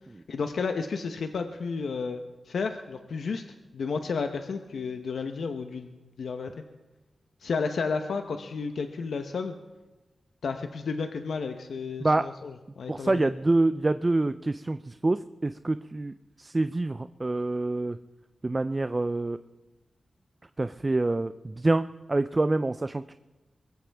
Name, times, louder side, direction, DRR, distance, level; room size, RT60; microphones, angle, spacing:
voice 1, 0.3-3.4 3.7-6.5 7.4-9.6 10.4-13.3, left 5 dB, 85° left, 6 dB, 0.8 m, -32 dB
voice 2, 12.9-18.0 18.4-19.4 20.6-23.1, right 2 dB, 30° right, 11 dB, 0.4 m, -26 dB
23.0 x 15.0 x 3.5 m, 1.2 s
wide cardioid pair, 80°, 0 cm